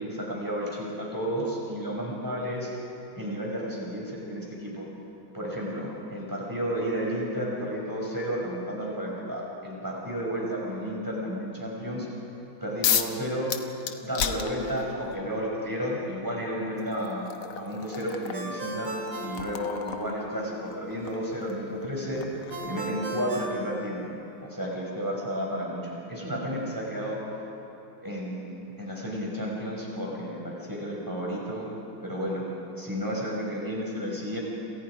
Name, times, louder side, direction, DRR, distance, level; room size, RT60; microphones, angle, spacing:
voice 1, 0.0-2.7 3.1-4.9 5.3-12.1 12.6-13.5 14.0-17.3 17.5-18.9 19.2-22.2 22.6-24.0 24.4-27.2 28.0-31.7 32.0-32.4 32.8-34.4, equal, 10° right, -3 dB, 6.5 m, -32 dB
sound 1, 12.8-13.2 13.5-15.1 16.2-16.3 16.8-23.4, left 8 dB, 85° left, 2.1 m, -34 dB
Ringtone, 18.3-20.3 22.5-24.5, right 2 dB, 55° right, 4.3 m, -37 dB
29.5 x 27.5 x 5.1 m, 2.8 s
omnidirectional pair, 2.4 m